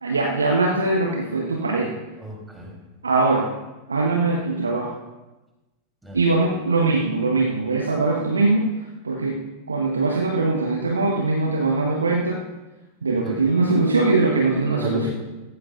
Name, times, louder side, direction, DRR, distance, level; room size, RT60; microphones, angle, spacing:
voice 1, 0.0-1.9 3.0-3.5 3.9-4.9 6.1-9.4 9.7-12.4 13.0-15.1, right 3 dB, 75° right, 0 dB, 1.2 m, -21 dB
voice 2, 2.2-2.8 6.0-6.5 13.2-13.3 14.7-15.1, equal, 5° right, -2 dB, 3.5 m, -33 dB
16.5 x 14.5 x 2.5 m, 1.1 s
figure-of-eight pair, 90°, 0 cm